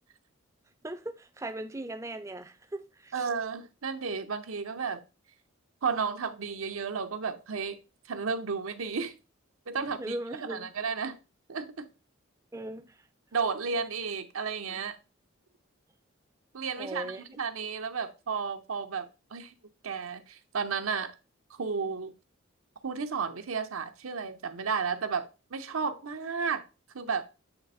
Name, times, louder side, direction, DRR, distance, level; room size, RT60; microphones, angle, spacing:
voice 1, 0.8-3.3 9.8-10.7 12.5-13.0 16.8-17.2, right 1 dB, 15° right, 0.4 m, -38 dB
voice 2, 3.1-5.0 5.8-7.8 8.1-9.1 9.7-11.2 11.5-11.9 13.3-15.0 16.5-19.5 19.8-21.1 21.6-22.1 22.8-26.6 26.9-27.2, right 5 dB, 85° right, 0.8 m, -33 dB
7.9 x 3.4 x 4.1 m
head